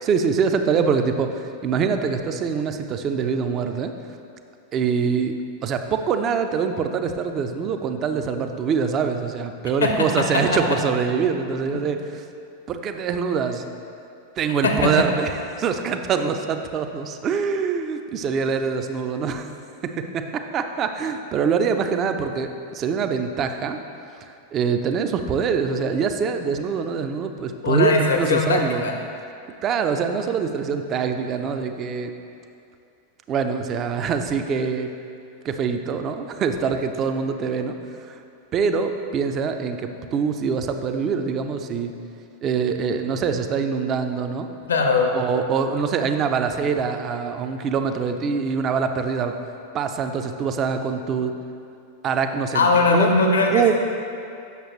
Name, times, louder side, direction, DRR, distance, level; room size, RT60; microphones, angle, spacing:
voice 1, 0.0-3.9 4.7-5.3 5.6-12.2 12.7-13.6 14.4-19.5 19.8-23.8 24.5-28.9 29.6-32.1 33.3-34.9 35.4-37.8 38.0-38.2 38.5-41.9 42.4-44.5 45.1-49.4 49.7-51.3 52.0-53.1 53.5-53.7, right 6 dB, 30° right, 7 dB, 0.4 m, -24 dB
voice 2, 9.8-10.4 11.7-11.8 14.6-14.9 27.6-28.9 44.7-45.1 52.5-53.7, left 3 dB, 70° left, 2 dB, 0.7 m, -20 dB
8.1 x 6.3 x 3.1 m, 2.5 s
figure-of-eight pair, 90°, 0 cm